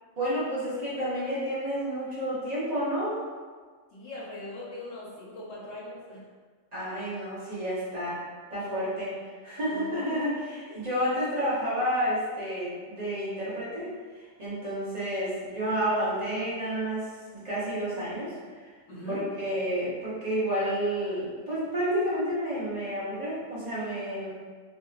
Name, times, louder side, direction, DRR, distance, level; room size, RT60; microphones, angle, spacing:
voice 1, 0.2-3.2 6.7-8.2 8.5-9.2 9.4-17.1 17.3-18.7 19.0-24.3, equal, 35° right, -10 dB, 0.9 m, -30 dB
voice 2, 3.9-6.2 9.7-9.9 10.7-10.8 18.9-19.2, left 1 dB, 65° left, -6 dB, 1.1 m, -40 dB
2.9 x 2.7 x 2.3 m, 1.5 s
omnidirectional pair, 1.3 m